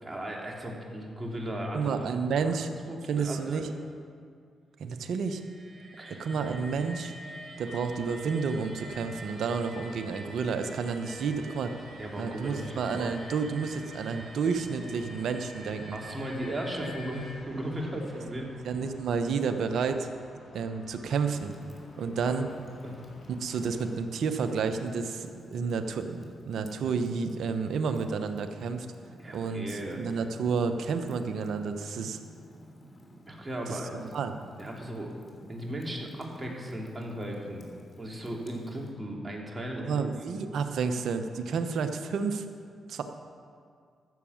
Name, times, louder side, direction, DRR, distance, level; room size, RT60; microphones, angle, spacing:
voice 1, 0.0-2.0 2.3-2.6 2.9-3.9 6.0-6.2 12.0-13.1 15.9-18.5 22.2-22.4 22.8-23.0 29.2-30.0 33.3-34.1 34.6-35.1 35.5-37.6 38.0-40.4, right 1 dB, 30° right, -1 dB, 3.1 m, -37 dB
voice 2, 1.7-2.7 3.1-3.7 4.8-5.4 6.2-7.1 7.6-11.8 12.2-16.0 18.6-20.1 20.5-21.5 22.0-22.5 23.4-28.9 29.3-32.2 33.7-34.3 39.8-42.4 42.9-43.0, right 5 dB, 75° right, 7 dB, 1.0 m, -30 dB
sound 1, 5.1-17.3, right 1 dB, 45° right, 3.3 m, -46 dB
sound 2, 7.6-23.9, left 1 dB, 60° left, 2.8 m, -53 dB
Fire, 21.3-38.9, equal, 45° left, 2.9 m, -51 dB
14.0 x 7.3 x 7.2 m, 2.2 s
supercardioid pair, 55°, 0 cm